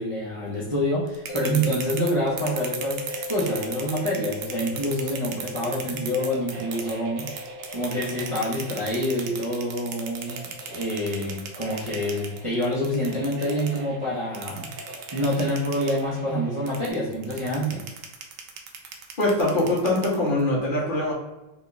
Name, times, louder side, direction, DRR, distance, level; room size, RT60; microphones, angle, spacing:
voice 1, 0.0-14.7 15.1-17.8, equal, 40° right, -7 dB, 0.4 m, -27 dB
sound 1, 1.1-6.9 7.2-13.8 14.4-16.0 16.7-20.4, right 7 dB, 90° right, 1.4 m, -36 dB
sound 2, 1.3-14.4, left 3 dB, 65° left, 1.1 m, -40 dB
sound 3, 3.0-16.9, right 2 dB, 70° right, 1.6 m, -45 dB
voice 2, 19.2-21.1, left 1 dB, 40° left, -5 dB, 0.7 m, -23 dB
3.6 x 2.3 x 3.9 m, 1.0 s
omnidirectional pair, 2.1 m